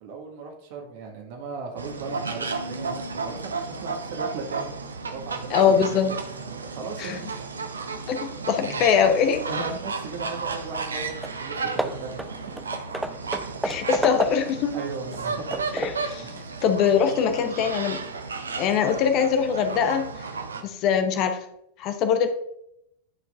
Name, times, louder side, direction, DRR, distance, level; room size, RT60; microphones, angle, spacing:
voice 1, 0.0-4.7 5.1-7.3 8.6-8.9 9.5-12.5 13.6-13.8 14.7-15.5 16.2-16.4, right 4 dB, 50° right, 2 dB, 1.6 m, -37 dB
sound 1, 1.8-20.6, right 4 dB, 75° right, 0.7 m, -33 dB
voice 2, 5.5-6.1 7.0-7.2 8.1-9.4 13.6-14.8 15.7-16.3 16.6-18.0 18.6-20.1 20.6-21.4 21.8-22.3, left 7 dB, 40° left, 8 dB, 0.8 m, -22 dB
Hammer / Wood, 10.9-11.0 11.2-11.4 11.8-14.6 15.1-16.1, right 1 dB, 5° right, 0.4 m, -32 dB
11.5 x 4.6 x 2.4 m, 0.79 s
figure-of-eight pair, 90°, 0 cm